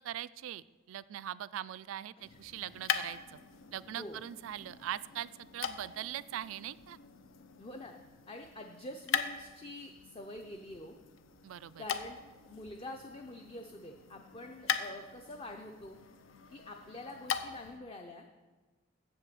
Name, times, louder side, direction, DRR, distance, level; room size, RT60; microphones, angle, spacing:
voice 1, 0.0-3.2 3.7-7.0 11.4-11.8, right 11 dB, 85° right, 17 dB, 0.3 m, -41 dB
sound 1, 2.2-17.8, left 7 dB, 75° left, 0.6 m, -41 dB
voice 2, 3.9-4.2 7.6-7.9 8.3-10.9 11.8-12.2 12.5-16.0 16.5-18.3, left 1 dB, 30° left, 3 dB, 0.6 m, -46 dB
7.8 x 7.1 x 7.6 m, 1.3 s
head